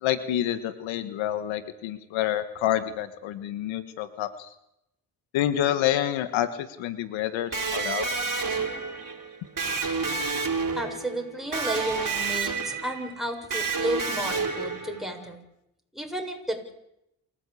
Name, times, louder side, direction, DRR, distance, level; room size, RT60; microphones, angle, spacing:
voice 1, 0.0-4.5 5.3-8.2, left 11 dB, 80° left, 12 dB, 1.5 m, -28 dB
Electric guitar, 7.5-15.2, right 4 dB, 45° right, 4.4 m, -30 dB
voice 2, 10.8-15.4 15.9-16.7, right 1 dB, ahead, 3 dB, 7.0 m, -32 dB
28.0 x 15.0 x 8.4 m, 0.82 s
supercardioid pair, 60°, 45 cm